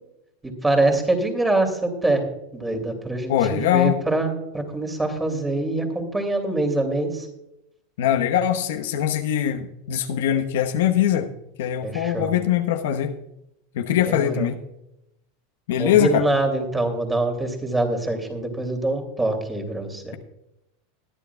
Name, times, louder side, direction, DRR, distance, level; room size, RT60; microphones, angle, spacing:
voice 1, 0.4-2.2 2.5-7.3 11.8-12.3 14.1-14.5 15.8-20.1, right 2 dB, 10° right, 4 dB, 2.7 m, -24 dB
voice 2, 3.3-4.0 8.0-11.3 11.6-13.2 13.7-14.6 15.7-16.3, left 10 dB, 75° left, 7 dB, 1.0 m, -22 dB
20.5 x 10.0 x 2.3 m, 0.84 s
supercardioid pair, 125°, 0 cm